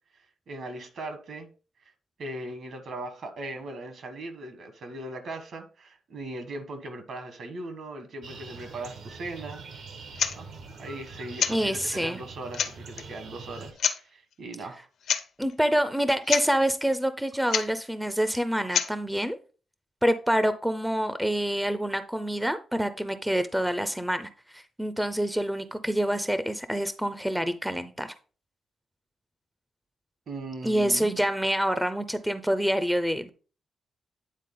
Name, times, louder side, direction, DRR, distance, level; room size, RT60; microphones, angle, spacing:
voice 1, 0.5-1.5 2.2-9.6 10.3-10.5 10.8-14.8 30.3-31.2, right 2 dB, 60° right, 1.3 m, -39 dB
sound 1, 8.2-13.7, right 4 dB, 80° right, 1.2 m, -44 dB
sound 2, 10.2-10.4 11.4-11.6 12.2-12.3 12.5-13.0 13.8-14.0 15.0-15.3 15.5-15.6 16.0-16.1 16.3-16.5 17.5-17.7 18.7-18.9, left 7 dB, 75° left, 0.7 m, -27 dB
voice 2, 11.5-12.2 15.4-19.4 20.0-28.2 30.6-33.3, equal, 5° right, 0.4 m, -27 dB
9.2 x 4.0 x 3.8 m
wide cardioid pair, 140°, 0 cm